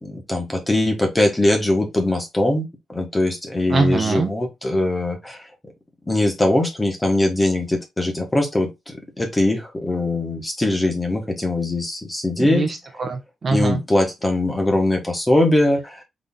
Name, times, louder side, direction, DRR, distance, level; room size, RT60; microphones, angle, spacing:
voice 1, 0.0-5.5 6.1-12.7 13.5-16.0, left 1 dB, 10° left, 1.1 m, -21 dB
voice 2, 3.7-4.3 12.4-13.8, right 3 dB, 30° right, 0.7 m, -22 dB
4.1 x 3.4 x 3.6 m
wide cardioid pair, 165°, 0 cm